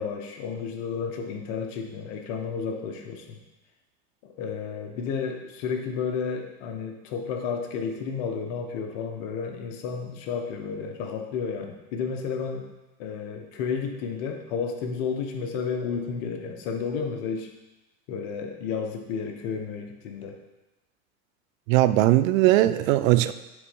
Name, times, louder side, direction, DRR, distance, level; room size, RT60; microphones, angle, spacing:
voice 1, 0.0-3.4 4.2-12.7 13.0-17.5 18.1-20.4, left 6 dB, 65° left, 4 dB, 1.3 m, -32 dB
voice 2, 21.7-23.3, right 15 dB, 70° right, 14 dB, 0.5 m, -19 dB
7.1 x 4.1 x 5.3 m, 1.0 s
hypercardioid pair, 100°, 42 cm